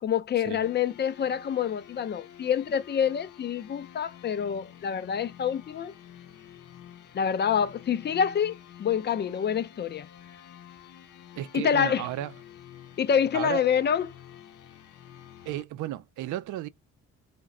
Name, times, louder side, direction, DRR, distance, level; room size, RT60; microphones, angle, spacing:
voice 1, 0.0-5.9 7.1-10.1 11.5-12.0 13.0-14.1, left 8 dB, 35° left, 0.4 m, -27 dB
sound 1, 0.6-15.6, left 11 dB, 85° left, 0.7 m, -49 dB
voice 2, 11.4-12.3 13.3-13.6 15.4-16.7, right 14 dB, 75° right, 0.5 m, -33 dB
3.0 x 2.2 x 3.6 m
cardioid pair, 90°, 30 cm